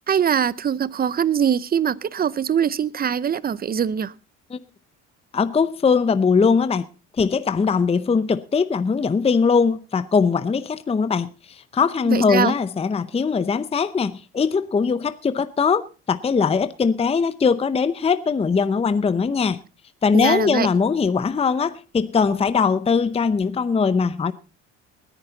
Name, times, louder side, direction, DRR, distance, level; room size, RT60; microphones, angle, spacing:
voice 1, 0.1-4.1 12.1-12.5 20.1-20.7, right 8 dB, 30° right, 0.7 m, -22 dB
voice 2, 5.3-6.9 7.1-19.6 20.0-24.3, left 5 dB, 20° left, 0.7 m, -21 dB
19.5 x 10.0 x 4.0 m
supercardioid pair, 95°, 33 cm